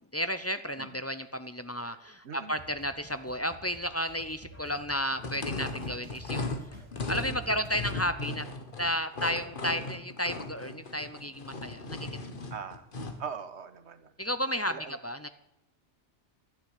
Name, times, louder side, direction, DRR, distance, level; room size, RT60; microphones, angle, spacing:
voice 1, 0.1-6.5 7.1-8.4 8.8-12.4 14.2-15.3, equal, 20° left, 11 dB, 0.4 m, -33 dB
sound 1, 2.6-8.2, right 1 dB, 25° right, 1.7 m, -50 dB
sound 2, 5.2-13.3, left 3 dB, 45° left, 1.4 m, -37 dB
voice 2, 12.5-12.9 13.2-14.1 14.7-15.0, right 6 dB, 70° right, 11 dB, 1.4 m, -41 dB
12.0 x 9.8 x 8.4 m, 0.87 s
omnidirectional pair, 1.2 m